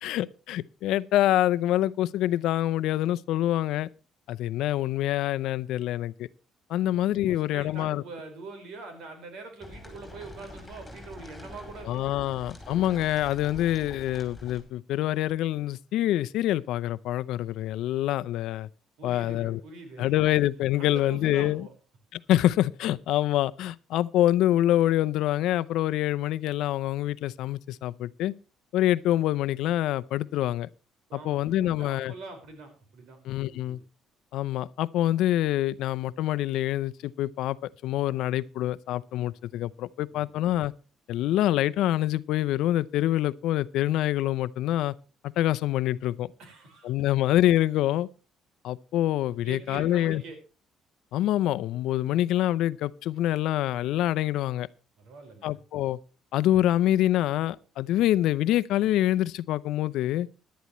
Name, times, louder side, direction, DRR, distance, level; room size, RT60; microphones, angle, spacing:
voice 1, 0.0-3.9 4.3-6.3 6.7-8.0 11.9-18.7 19.0-19.6 20.0-21.7 22.1-28.3 28.7-30.7 31.1-32.1 33.2-33.8 34.3-40.7 41.1-44.9 45.2-46.3 46.8-48.1 48.6-50.2 51.1-54.7 55.4-56.0 56.3-60.3, left 13 dB, 80° left, 0.6 m, -26 dB
voice 2, 7.2-12.1 19.0-20.1 20.8-21.7 31.1-33.2 33.4-33.8 40.1-40.3 46.4-46.9 49.4-50.4 55.0-55.6, right 3 dB, 75° right, 4.9 m, -44 dB
sound 1, 9.6-14.6, left 1 dB, 5° left, 5.2 m, -45 dB
17.5 x 11.5 x 3.1 m
cardioid pair, 135°, 0 cm